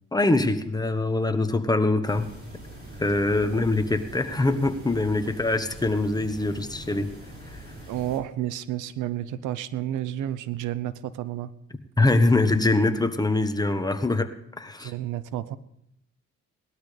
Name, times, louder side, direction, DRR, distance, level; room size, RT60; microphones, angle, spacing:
voice 1, 0.1-2.3 3.0-7.1 7.5-7.6 12.0-14.3 14.6-14.9, left 2 dB, 15° left, 8 dB, 1.2 m, -23 dB
sound 1, 2.0-8.2, right 1 dB, 35° right, 5.3 m, -43 dB
voice 2, 7.9-11.5 14.8-15.6, right 12 dB, 90° right, 15 dB, 0.7 m, -31 dB
19.0 x 12.5 x 3.3 m, 0.76 s
cardioid pair, 90°, 30 cm